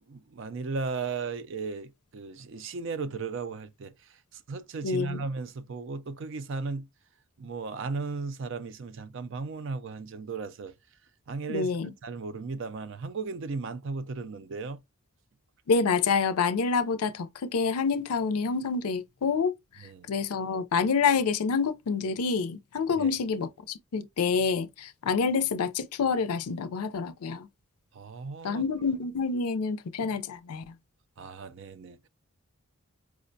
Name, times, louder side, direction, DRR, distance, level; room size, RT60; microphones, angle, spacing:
voice 1, 0.1-3.9 4.3-6.9 7.4-10.7 11.3-11.7 12.0-14.8 19.8-20.1 23.0-23.1 27.9-28.6 31.2-32.0, right 4 dB, 55° right, 0.4 m, -36 dB
voice 2, 4.8-5.2 11.5-11.9 15.7-19.5 20.1-27.5 28.4-30.6, left 5 dB, 85° left, 0.5 m, -27 dB
4.8 x 2.1 x 2.6 m
head